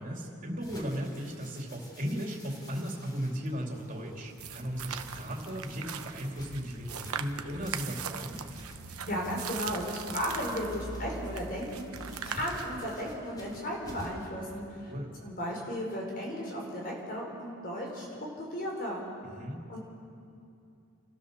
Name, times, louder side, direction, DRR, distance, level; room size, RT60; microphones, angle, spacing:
voice 1, 0.0-8.4 14.9-15.1 19.2-19.6, equal, 35° right, 0 dB, 2.9 m, -36 dB
sound 1, 0.6-14.3, equal, 20° left, 3.2 m, -51 dB
sound 2, 4.4-12.9, right 6 dB, 85° right, 1.0 m, -40 dB
voice 2, 8.9-14.9 15.2-18.1 18.4-19.0 19.7-19.8, equal, 40° left, -2 dB, 5.2 m, -35 dB
30.0 x 13.0 x 6.8 m, 2.6 s
head